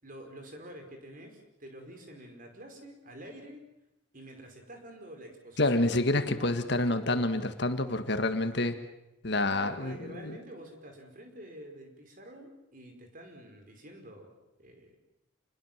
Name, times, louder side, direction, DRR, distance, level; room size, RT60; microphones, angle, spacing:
voice 1, 0.0-3.7 4.1-5.9 9.5-14.3 14.6-15.0, right 1 dB, 45° right, 4 dB, 5.1 m, -48 dB
voice 2, 5.6-8.8 9.2-10.4, left 2 dB, 60° left, 8 dB, 1.8 m, -28 dB
28.0 x 21.0 x 7.5 m, 0.90 s
head